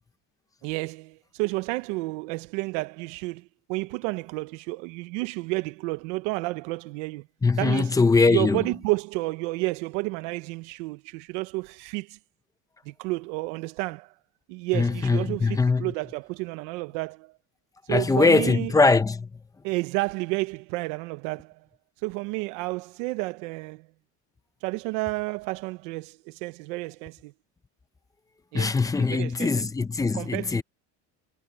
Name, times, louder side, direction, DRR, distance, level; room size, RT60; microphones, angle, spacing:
voice 1, 0.6-7.2 7.6-7.9 8.3-12.2 12.9-14.1 14.5-17.3 17.9-18.7 19.6-21.6 22.0-23.9 24.6-27.3 28.5-28.7 29.0-29.7 30.1-30.6, right 24 dB, 80° right, 0.8 m, -31 dB
voice 2, 7.4-8.6 14.7-15.9 17.9-19.3 28.5-30.6, left 4 dB, 10° left, 0.7 m, -22 dB
cardioid pair, 150°, 36 cm